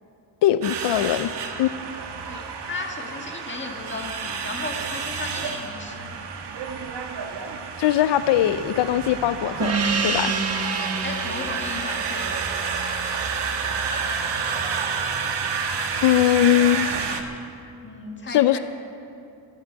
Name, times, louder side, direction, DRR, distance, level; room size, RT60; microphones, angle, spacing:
voice 1, 0.4-1.3 1.6-1.7 7.8-10.3 16.0-16.9 18.3-18.6, left 12 dB, 85° left, 13 dB, 0.5 m, -20 dB
sound 1, 0.6-17.2, right 5 dB, 75° right, 1.4 m, -30 dB
voice 2, 2.2-6.1 11.0-12.4 17.8-18.6, left 3 dB, 25° left, 2 dB, 1.7 m, -35 dB
sound 2, 4.2-7.4 8.1-10.0, right 4 dB, 55° right, 1.3 m, -45 dB
Gong, 9.6-14.6, right 4 dB, 35° right, 1.0 m, -29 dB
24.5 x 10.5 x 4.7 m, 2.7 s
wide cardioid pair, 155°, 41 cm